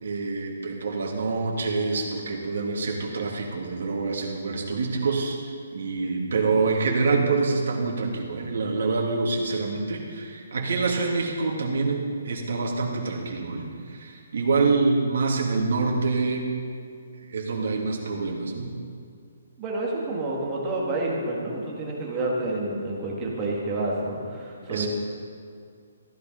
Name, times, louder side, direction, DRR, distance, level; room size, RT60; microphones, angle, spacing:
voice 1, 0.0-5.3 5.7-13.7 13.9-16.5 17.3-18.8 24.7-24.9, right 4 dB, 55° right, 0 dB, 2.2 m, -26 dB
voice 2, 19.6-24.9, right 2 dB, 15° right, -3 dB, 1.8 m, -29 dB
14.5 x 10.5 x 5.2 m, 2.2 s
hypercardioid pair, 175°, 0 cm